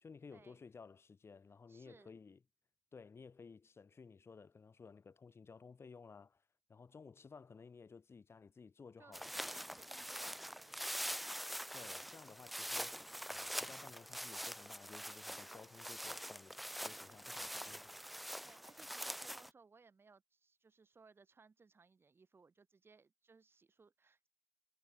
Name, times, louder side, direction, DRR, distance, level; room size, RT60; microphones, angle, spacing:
voice 1, 0.0-2.4 2.9-6.4 6.7-9.3 11.7-17.8, left 5 dB, 20° left, 1.8 m, -56 dB
voice 2, 1.7-2.1 9.0-11.0 17.4-17.7 18.4-24.3, right 4 dB, 20° right, 2.1 m, -64 dB
sound 1, 9.1-19.5, equal, ahead, 0.4 m, -44 dB
hypercardioid pair, 75°, 11 cm